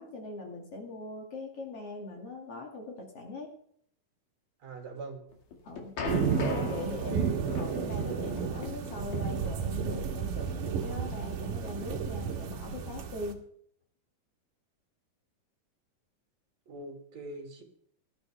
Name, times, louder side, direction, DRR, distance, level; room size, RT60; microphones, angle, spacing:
voice 1, 0.0-3.5 5.6-5.9 6.4-13.4, left 2 dB, 45° left, 1 dB, 3.2 m, -41 dB
voice 2, 4.6-5.2 6.8-7.5 16.7-17.6, right 3 dB, 50° right, 1 dB, 4.0 m, -42 dB
sound 1, 5.3-12.2, left 5 dB, 65° left, 3.7 m, -41 dB
sound 2, 6.1-13.3, right 6 dB, 70° right, 2.9 m, -32 dB
18.0 x 13.0 x 3.5 m, 0.66 s
omnidirectional pair, 4.0 m